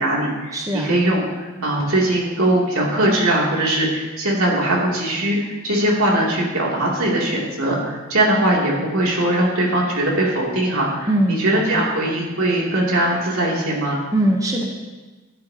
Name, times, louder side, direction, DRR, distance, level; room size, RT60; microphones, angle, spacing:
voice 1, 0.0-14.0, right 1 dB, 80° right, -3 dB, 2.8 m, -20 dB
voice 2, 0.5-1.0 11.1-11.9 14.1-14.6, right 1 dB, 15° right, 1 dB, 0.9 m, -21 dB
13.0 x 11.5 x 2.9 m, 1.2 s
head